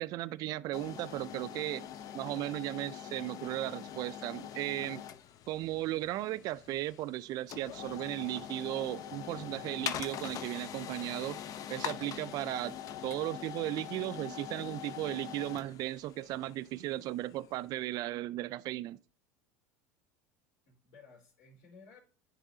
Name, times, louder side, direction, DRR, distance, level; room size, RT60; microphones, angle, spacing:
voice 1, 0.0-1.9 2.1-5.0 5.5-11.4 11.7-12.8 13.0-19.0, right 15 dB, 50° right, 0.4 m, -36 dB
sound 1, 0.7-17.6, left 10 dB, 45° left, 0.6 m, -43 dB
voice 2, 1.9-2.2 20.7-22.0, left 4 dB, 65° left, 3.8 m, -58 dB
10.0 x 4.1 x 2.7 m
hypercardioid pair, 100°, 9 cm